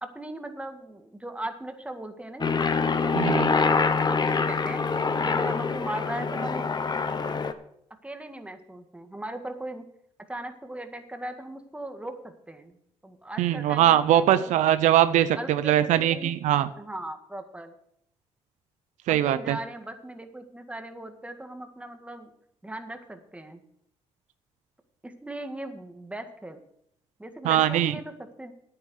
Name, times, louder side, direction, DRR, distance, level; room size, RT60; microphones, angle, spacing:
voice 1, 0.0-4.8 5.2-6.7 8.0-9.9 10.3-12.8 13.0-14.6 15.4-16.3 16.8-17.7 19.1-22.3 22.6-23.6 25.0-26.6 27.2-28.5, right 1 dB, 10° right, 6 dB, 1.9 m, -38 dB
Aircraft, 2.4-7.5, left 4 dB, 35° left, 1.1 m, -25 dB
voice 2, 3.1-3.5 13.4-16.7 19.1-19.6 27.4-27.9, right 11 dB, 85° right, 13 dB, 0.6 m, -22 dB
9.4 x 9.2 x 6.4 m, 0.73 s
cardioid pair, 75°, 12 cm